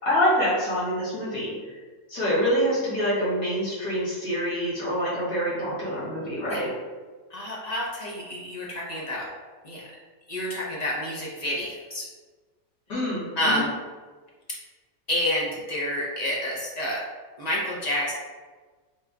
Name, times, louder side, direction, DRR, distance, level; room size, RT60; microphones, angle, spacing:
voice 1, 0.0-1.8 2.1-6.7 12.9-13.7, equal, 70° left, -8 dB, 2.1 m, -26 dB
voice 2, 7.3-9.2 9.6-9.8 10.3-12.1 13.4-13.7 15.1-17.0 17.4-18.1, left 1 dB, 40° left, -4 dB, 0.6 m, -28 dB
4.6 x 2.3 x 3.6 m, 1.4 s
omnidirectional pair, 1.6 m